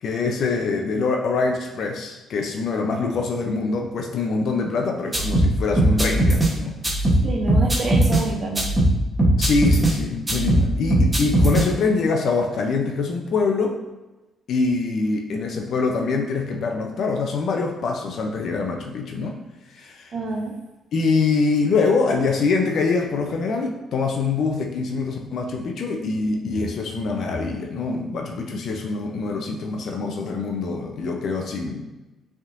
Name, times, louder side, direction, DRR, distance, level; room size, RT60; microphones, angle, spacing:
voice 1, 0.0-6.7 7.0-7.1 9.4-13.8 14.5-19.4 19.7-20.1 20.9-31.8, left 4 dB, 65° left, 2 dB, 0.6 m, -24 dB
sound 1, 5.1-6.5 6.8-8.2 8.5-9.9 10.3-11.6, right 1 dB, 15° right, 1.1 m, -19 dB
voice 2, 7.2-8.7 20.1-20.5, right 3 dB, 50° right, 0 dB, 0.6 m, -27 dB
5.2 x 3.6 x 2.6 m, 1.1 s
cardioid pair, 90°, 0 cm